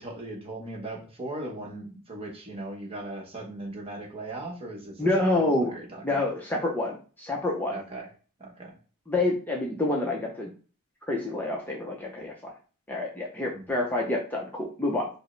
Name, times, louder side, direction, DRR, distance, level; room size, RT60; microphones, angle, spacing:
voice 1, 0.0-6.3 7.7-8.1 8.4-8.8 13.5-13.7, right 2 dB, 25° right, 0 dB, 0.9 m, -38 dB
voice 2, 5.0-5.7 6.0-7.8 9.1-10.5 11.1-12.5 12.9-15.1, left 2 dB, 10° left, -2 dB, 0.5 m, -27 dB
4.7 x 2.0 x 3.1 m, 0.37 s
head